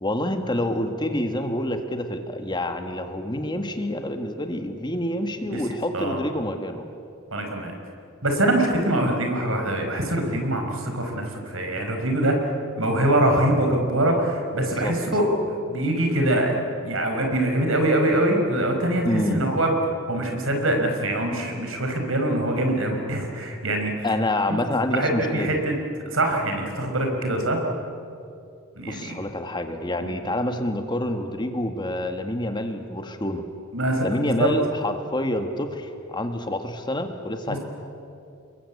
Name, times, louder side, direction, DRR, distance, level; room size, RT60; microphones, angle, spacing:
voice 1, 0.0-6.8 14.7-14.9 19.0-19.5 24.0-25.5 28.9-33.5 34.0-37.6, left 1 dB, 20° left, 6 dB, 1.6 m, -27 dB
voice 2, 7.3-7.7 8.2-12.5 12.7-16.5 16.8-19.8 20.1-23.9 24.9-25.7 26.0-27.6 28.8-29.1 30.0-30.1 33.7-34.5 37.5-37.6, right 1 dB, 65° right, 3 dB, 4.9 m, -23 dB
29.0 x 22.0 x 8.5 m, 2.5 s
head